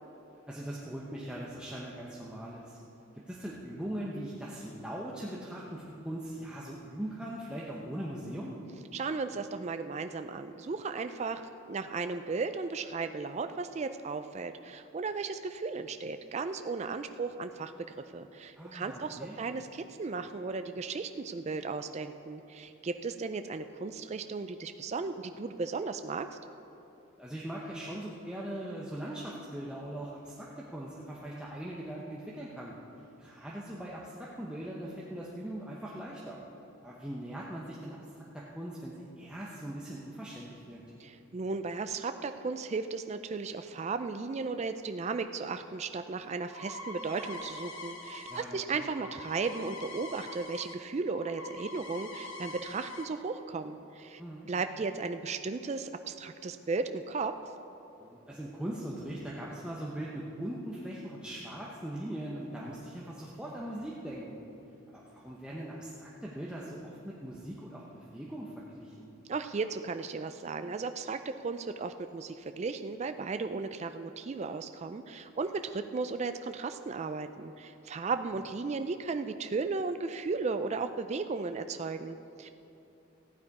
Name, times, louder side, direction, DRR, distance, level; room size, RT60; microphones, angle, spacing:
voice 1, 0.5-2.8 3.3-8.6 18.6-19.4 27.2-32.8 33.2-36.4 36.8-40.8 48.3-48.9 54.2-54.5 58.0-64.4 64.9-69.1, right 1 dB, 5° right, -5 dB, 0.8 m, -40 dB
voice 2, 8.9-17.7 18.1-26.4 41.0-54.2 54.5-57.4 69.3-82.5, right 4 dB, 30° right, 9 dB, 0.3 m, -35 dB
sound 1, 46.2-50.7 51.0-53.1, left 1 dB, 65° left, 1.1 m, -44 dB
14.5 x 9.5 x 4.8 m, 2.9 s
head